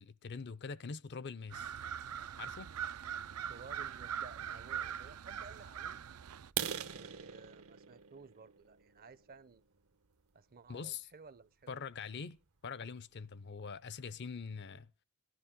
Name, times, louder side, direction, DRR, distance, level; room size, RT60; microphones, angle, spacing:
voice 1, 0.0-1.7 2.4-2.7 10.7-11.1 11.7-12.4 12.6-14.9, left 5 dB, 50° left, 0.5 m, -43 dB
sound 1, 1.5-6.5, right 9 dB, 85° right, 0.5 m, -42 dB
voice 2, 3.5-6.0 6.6-9.6 10.3-11.8, right 4 dB, 40° right, 0.6 m, -55 dB
sound 2, 6.4-10.2 10.7-10.9 11.4-11.5 11.9-12.1 12.4-12.5 12.9-13.0 13.3-13.8, right 9 dB, 70° right, 0.9 m, -42 dB
16.5 x 11.0 x 3.6 m
head